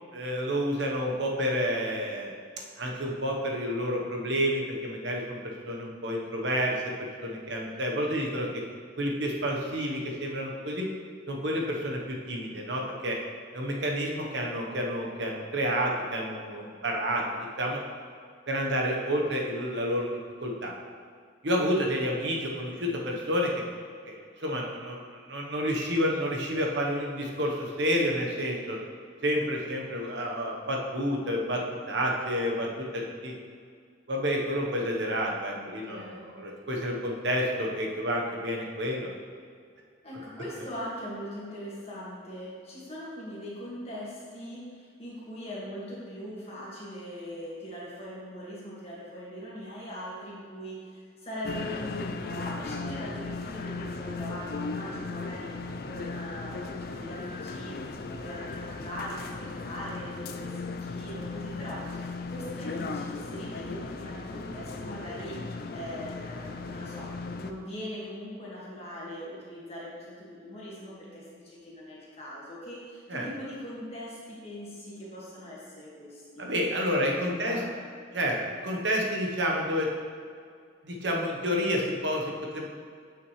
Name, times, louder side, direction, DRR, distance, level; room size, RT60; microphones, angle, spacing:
voice 1, 0.1-2.3 2.8-8.6 9.0-10.9 11.3-13.2 13.5-17.2 17.6-17.8 18.5-20.1 20.4-20.7 21.4-23.5 24.0-28.8 29.2-33.3 34.1-39.1 73.1-73.3 76.4-77.6 78.1-79.9 80.8-82.7, equal, 65° right, -1 dB, 1.1 m, -29 dB
voice 2, 35.5-36.3 40.0-55.5 55.8-57.7 58.0-67.1 67.3-76.5 76.9-77.9, equal, 30° left, -6 dB, 1.9 m, -41 dB
sound 1, 51.4-67.5, left 3 dB, 50° left, 0.4 m, -37 dB
8.3 x 6.3 x 3.2 m, 2.2 s
head